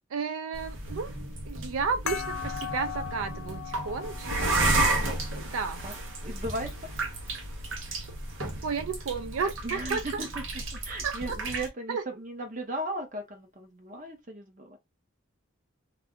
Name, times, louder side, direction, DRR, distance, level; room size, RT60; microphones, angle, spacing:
voice 1, 0.1-1.1 1.4-4.7 5.5-5.8 8.6-10.2 11.0-12.0, right 5 dB, 90° right, 0.4 m, -33 dB
sound 1, 0.5-11.7, right 2 dB, 70° right, 0.9 m, -32 dB
sound 2, 2.1-7.1, left 8 dB, 85° left, 0.6 m, -40 dB
sound 3, 3.0-4.3 5.8-7.0 7.3-7.9 8.4-8.7 9.1-9.4 9.9-10.2 10.5-10.9, left 1 dB, 25° left, 0.5 m, -50 dB
voice 2, 6.2-6.7 9.6-10.4 10.8-14.8, right 1 dB, 40° right, 0.9 m, -36 dB
2.5 x 2.2 x 3.5 m
head